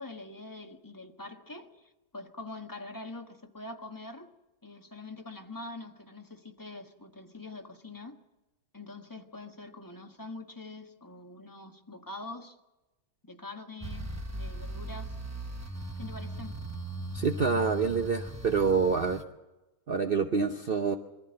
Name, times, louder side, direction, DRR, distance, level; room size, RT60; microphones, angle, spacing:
voice 1, 0.0-4.3 4.6-8.2 8.7-12.6 13.3-15.1 16.0-16.7, left 2 dB, 15° left, 4 dB, 1.2 m, -44 dB
sound 1, 13.8-19.2, right 1 dB, 15° right, 0.7 m, -38 dB
voice 2, 17.1-19.2 19.9-21.0, right 5 dB, 45° right, 6 dB, 0.8 m, -27 dB
23.0 x 15.0 x 7.7 m, 1.1 s
omnidirectional pair, 1.8 m